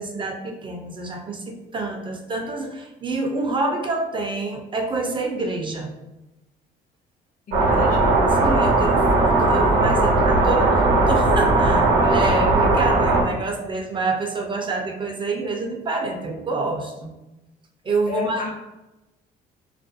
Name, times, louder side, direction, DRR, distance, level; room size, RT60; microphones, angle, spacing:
voice 1, 0.0-5.9 7.8-7.9 8.3-17.1 17.8-18.4, right 3 dB, 30° right, 3 dB, 0.4 m, -27 dB
voice 2, 7.5-8.2 18.1-18.5, left 3 dB, 50° left, 1 dB, 0.6 m, -31 dB
sound 1, 7.5-13.2, right 2 dB, 65° right, 0.7 m, -18 dB
2.3 x 2.2 x 2.5 m, 1.0 s
cardioid pair, 110°, 17 cm